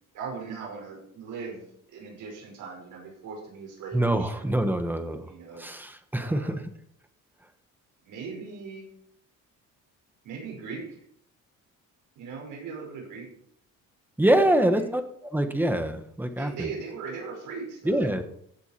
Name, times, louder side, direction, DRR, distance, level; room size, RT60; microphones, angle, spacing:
voice 1, 0.1-4.6 5.3-5.7 6.2-6.6 8.0-8.9 10.2-11.0 12.2-13.3 14.4-14.6 16.4-18.2, right 5 dB, 80° right, -1 dB, 5.4 m, -39 dB
voice 2, 3.9-6.7 14.2-16.7 17.8-18.3, right 1 dB, 5° right, 7 dB, 1.2 m, -25 dB
16.0 x 8.1 x 4.5 m, 0.68 s
cardioid pair, 155°, 31 cm